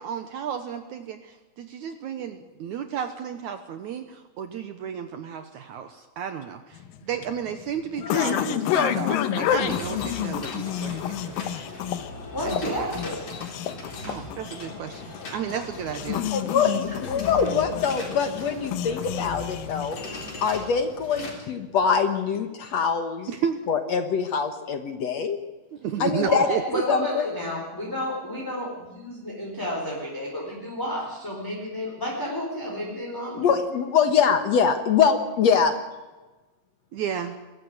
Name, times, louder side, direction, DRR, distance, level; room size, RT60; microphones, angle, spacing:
voice 1, 0.0-11.4 12.4-12.9 14.0-16.3 23.3-23.6 25.8-26.8 36.9-37.4, right 8 dB, 65° right, 8 dB, 2.2 m, -32 dB
sound 1, 6.8-20.3, left 11 dB, 80° left, 2.8 m, -30 dB
voice 2, 8.0-8.4 16.3-23.3 23.7-25.4 26.0-26.5 26.9-27.2 33.3-35.7, left 6 dB, 60° left, 8 dB, 2.1 m, -24 dB
sound 2, 9.4-21.3, left 2 dB, 45° left, 4.9 m, -39 dB
voice 3, 12.0-13.3 14.1-14.3 26.2-33.5, equal, 5° left, -4 dB, 4.1 m, -31 dB
22.0 x 14.5 x 9.6 m, 1.2 s
omnidirectional pair, 4.0 m